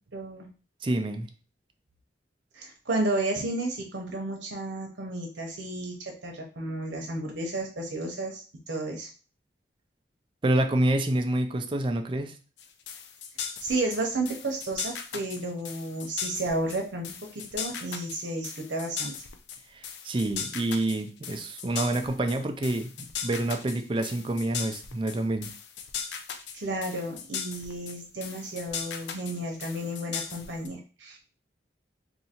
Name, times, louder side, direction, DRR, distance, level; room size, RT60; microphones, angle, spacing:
voice 1, 0.1-0.5 2.5-9.1 13.6-19.1 26.5-31.2, right 2 dB, 85° right, 1 dB, 0.8 m, -32 dB
voice 2, 0.8-1.3 10.4-12.4 19.7-22.9 23.2-25.5, right 1 dB, 30° right, 6 dB, 0.4 m, -27 dB
sound 1, 12.6-30.7, left 7 dB, 75° left, 0.4 m, -38 dB
2.7 x 2.6 x 4.2 m, 0.36 s
head